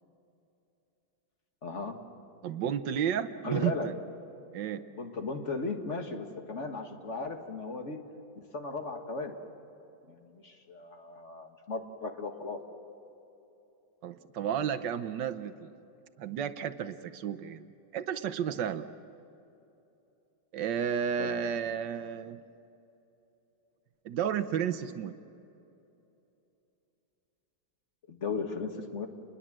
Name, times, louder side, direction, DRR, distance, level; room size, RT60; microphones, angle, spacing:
voice 1, 1.6-2.0 3.4-3.9 5.0-8.1 8.4-9.4 10.1-12.6 21.2-21.3 28.1-29.1, left 3 dB, 40° left, 4 dB, 2.0 m, -36 dB
voice 2, 2.4-3.9 4.5-4.8 14.0-15.7 16.2-18.9 20.5-22.4 24.0-25.1, right 8 dB, 75° right, 9 dB, 1.5 m, -32 dB
29.5 x 21.5 x 7.5 m, 2.9 s
omnidirectional pair, 2.0 m